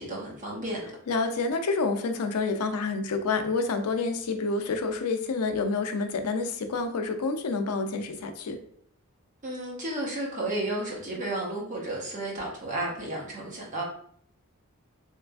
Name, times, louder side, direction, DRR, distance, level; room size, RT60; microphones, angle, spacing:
voice 1, 0.0-0.9 9.4-13.8, right 1 dB, 35° right, -3 dB, 0.9 m, -32 dB
voice 2, 1.1-8.6, left 3 dB, 80° left, 7 dB, 0.5 m, -28 dB
3.3 x 3.0 x 2.3 m, 0.63 s
head